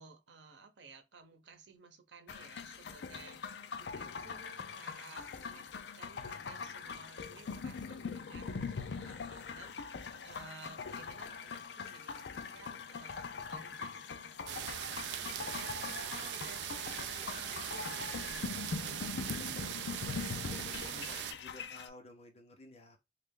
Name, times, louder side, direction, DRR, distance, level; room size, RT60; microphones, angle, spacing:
voice 1, 0.0-14.7 15.0-20.3, right 4 dB, 90° right, 0.8 m, -56 dB
sound 1, 2.3-21.9, left 5 dB, 75° left, 0.4 m, -42 dB
sound 2, 14.5-21.3, right 11 dB, 70° right, 0.3 m, -40 dB
voice 2, 20.9-23.0, left 2 dB, 35° left, 0.9 m, -54 dB
3.3 x 2.4 x 3.6 m
head